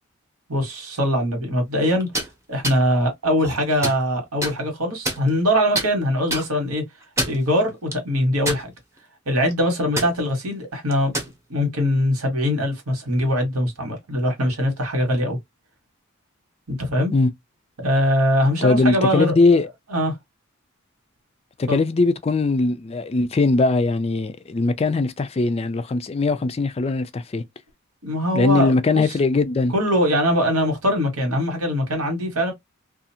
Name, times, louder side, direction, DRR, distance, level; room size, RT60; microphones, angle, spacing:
voice 1, 0.5-2.1 2.5-6.8 7.2-8.7 9.3-11.1 11.5-15.4 16.7-17.1 17.8-19.3 19.9-20.1 21.7-21.8 28.0-29.0 29.7-32.5, equal, 85° right, 1.4 m, -22 dB
sound 1, 2.0-2.3 2.6-2.8 3.4-4.0 4.4-4.5 5.0-5.5 5.7-5.9 6.3-6.5 7.0-7.4 7.9-8.0 8.4-9.0 9.3-9.5 10.0-10.1 10.9-11.3, right 1 dB, 15° right, 0.7 m, -26 dB
voice 2, 18.6-19.7 21.6-27.4 28.3-29.7, left 3 dB, 30° left, 0.3 m, -20 dB
2.6 x 2.4 x 2.7 m
head